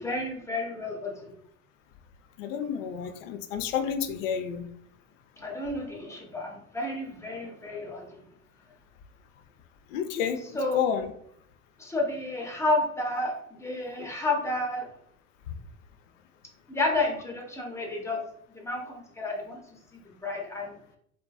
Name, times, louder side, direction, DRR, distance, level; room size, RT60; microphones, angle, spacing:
voice 1, 0.0-1.3 5.4-8.2 10.5-10.8 11.8-14.9 16.7-18.2 18.5-19.6 19.9-20.8, left 2 dB, 5° left, -1 dB, 0.5 m, -31 dB
voice 2, 2.4-4.6 9.9-11.1 14.0-14.1, left 8 dB, 70° left, 7 dB, 0.5 m, -30 dB
2.5 x 2.2 x 2.3 m, 0.68 s
hypercardioid pair, 85°, 40 cm